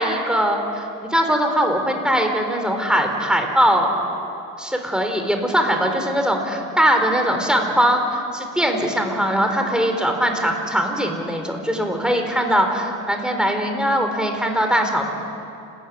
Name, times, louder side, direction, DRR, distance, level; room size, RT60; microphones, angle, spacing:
voice 1, 0.0-3.9 4.6-15.1, equal, 5° right, 4 dB, 4.1 m, -21 dB
29.5 x 13.5 x 9.6 m, 2.6 s
cardioid pair, 90°, 30 cm